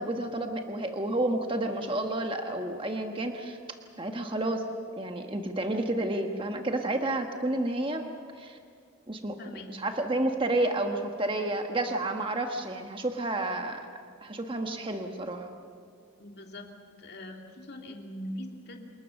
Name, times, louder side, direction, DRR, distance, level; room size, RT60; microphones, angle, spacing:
voice 1, 0.0-3.6 4.0-4.7 5.0-8.1 8.4-8.6 9.1-13.9 14.2-15.5, right 2 dB, 25° right, 4 dB, 1.4 m, -30 dB
voice 2, 9.4-9.8 12.6-12.7 16.2-16.7 17.0-18.9, left 1 dB, 50° left, 2 dB, 2.7 m, -42 dB
28.0 x 20.0 x 6.6 m, 2.3 s
head